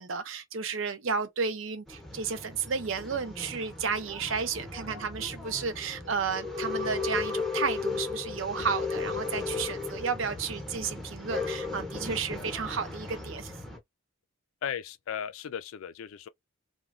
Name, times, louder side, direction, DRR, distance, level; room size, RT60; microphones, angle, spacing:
voice 1, 0.0-13.5, right 5 dB, 70° right, 0.6 m, -32 dB
Male speech man speaking / Chatter / Rattle, 1.9-13.8, left 4 dB, ahead, 0.6 m, -36 dB
voice 2, 14.6-16.3, left 8 dB, 85° left, 0.4 m, -36 dB
3.0 x 2.2 x 2.4 m
head